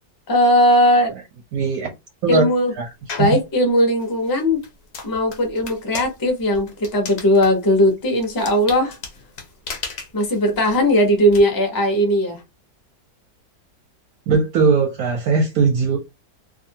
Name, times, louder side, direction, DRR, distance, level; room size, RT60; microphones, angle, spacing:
voice 1, 0.3-1.1 2.3-2.7 3.2-4.6 5.0-9.0 10.1-12.4, equal, 25° left, 0.4 m, -18 dB
voice 2, 1.5-1.9 2.2-2.5 2.8-2.9 3.2-3.3 14.3-16.0, right 4 dB, 70° right, 0.9 m, -19 dB
sound 1, 3.1-3.4 4.0-11.4, left 4 dB, 60° left, 0.7 m, -36 dB
2.6 x 2.5 x 2.7 m
omnidirectional pair, 1.9 m